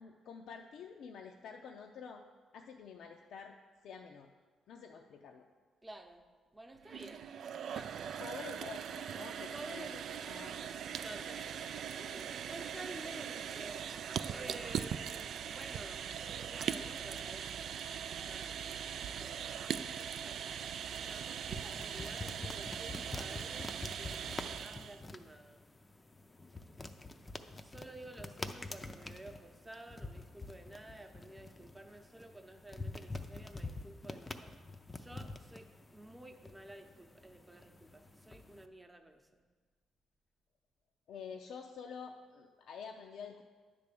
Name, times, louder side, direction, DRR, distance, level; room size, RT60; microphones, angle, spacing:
voice 1, 0.0-2.2 2.5-3.5 3.8-4.3 4.7-5.5 8.2-9.9 10.3-10.5 10.9-11.1 41.1-43.4, left 6 dB, 75° left, 3 dB, 0.5 m, -48 dB
voice 2, 5.8-6.2 6.5-7.3 7.7-8.1 9.5-10.0 11.0-11.6 12.0-16.1 16.4-17.8 18.1-18.6 19.2-20.5 21.0-24.3 24.6-25.6 27.6-34.5 34.9-39.4, right 1 dB, 15° right, 5 dB, 0.8 m, -51 dB
sound 1, 6.8-25.0, right 8 dB, 65° right, 0.3 m, -41 dB
sound 2, 20.4-38.7, left 2 dB, 20° left, 0.5 m, -47 dB
10.0 x 3.4 x 6.8 m, 1.4 s
cardioid pair, 90°, 0 cm